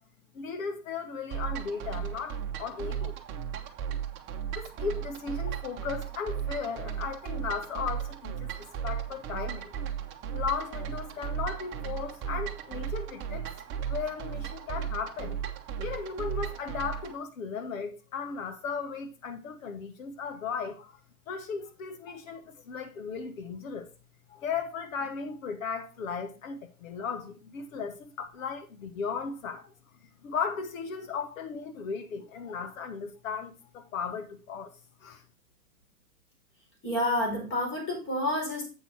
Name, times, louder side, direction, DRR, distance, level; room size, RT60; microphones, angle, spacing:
voice 1, 0.3-3.2 3.5-3.7 4.5-9.7 10.3-13.5 13.9-15.4 15.8-21.0 21.3-23.9 24.3-29.6 30.2-34.7 35.0-35.2, left 5 dB, 60° left, 1.4 m, -36 dB
sound 1, 1.3-17.2, right 8 dB, 25° right, 1.0 m, -36 dB
voice 2, 36.8-38.6, left 1 dB, 25° left, 4.2 m, -29 dB
7.9 x 5.9 x 4.6 m
hypercardioid pair, 125°, 46 cm